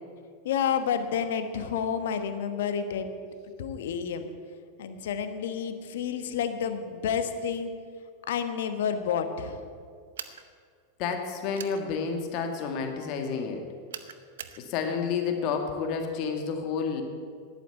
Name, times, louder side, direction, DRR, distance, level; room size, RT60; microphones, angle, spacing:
voice 1, 0.4-3.1 3.6-4.3 4.8-7.7 8.3-9.6, left 7 dB, 70° left, 9 dB, 1.2 m, -30 dB
sound 1, 10.2-10.4 11.6-11.8 13.9-14.6, right 9 dB, 75° right, 0.7 m, -40 dB
voice 2, 11.0-13.7 14.6-17.0, left 5 dB, 50° left, 4 dB, 1.8 m, -30 dB
11.0 x 9.1 x 8.2 m, 2.1 s
hypercardioid pair, 95°, 0 cm